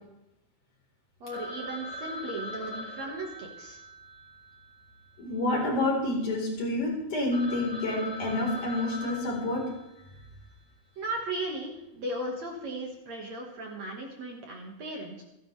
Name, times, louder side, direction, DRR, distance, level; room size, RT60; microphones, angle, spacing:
voice 1, 1.2-3.8 11.0-15.2, right 2 dB, 50° right, 1 dB, 2.6 m, -36 dB
Telephone, 1.3-5.7 5.9-6.0 6.6-6.7 7.0-7.1 7.3-10.3, left 1 dB, 20° left, 3.1 m, -41 dB
voice 2, 5.2-9.6, left 2 dB, 50° left, -3 dB, 5.6 m, -28 dB
27.5 x 10.5 x 3.4 m, 0.88 s
omnidirectional pair, 4.4 m